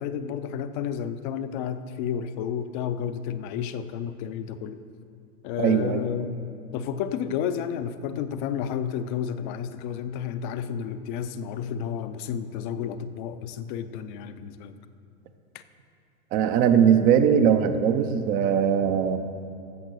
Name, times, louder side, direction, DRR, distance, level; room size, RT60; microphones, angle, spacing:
voice 1, 0.0-4.8 5.4-6.3 6.7-14.8 15.5-15.6, left 8 dB, 35° left, 11 dB, 0.5 m, -31 dB
voice 2, 5.6-6.0 16.3-19.2, right 8 dB, 20° right, 9 dB, 0.4 m, -20 dB
15.0 x 5.9 x 6.3 m, 2.6 s
hypercardioid pair, 135°, 44 cm